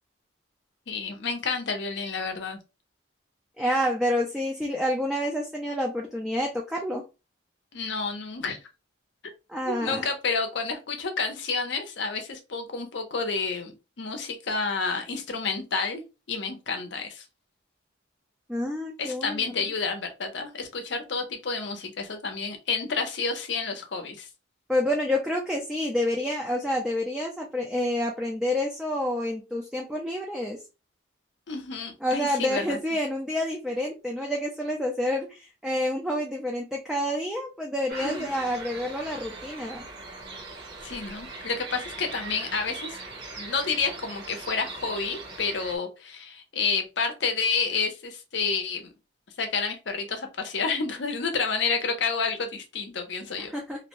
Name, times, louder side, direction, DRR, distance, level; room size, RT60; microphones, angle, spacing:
voice 1, 0.9-2.6 7.7-8.6 9.6-16.0 16.3-17.2 19.0-24.3 31.5-32.8 38.0-38.3 40.8-43.0 43.4-48.9 49.4-53.5, left 4 dB, 60° left, 5 dB, 0.6 m, -30 dB
voice 2, 3.6-7.0 9.5-10.1 18.5-19.5 24.7-30.6 32.0-39.8 53.4-53.9, left 1 dB, ahead, -1 dB, 0.3 m, -28 dB
sound 1, 37.9-45.8, right 3 dB, 55° right, 0.9 m, -40 dB
2.6 x 2.1 x 2.9 m, 0.28 s
head